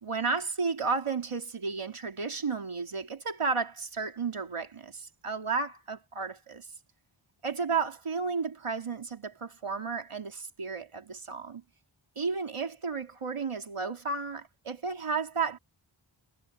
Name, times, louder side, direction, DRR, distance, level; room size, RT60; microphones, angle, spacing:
voice 1, 0.0-6.7 7.4-11.6 12.2-15.6, right 5 dB, 90° right, 2.2 m, -33 dB
wide cardioid pair, 50°, 49 cm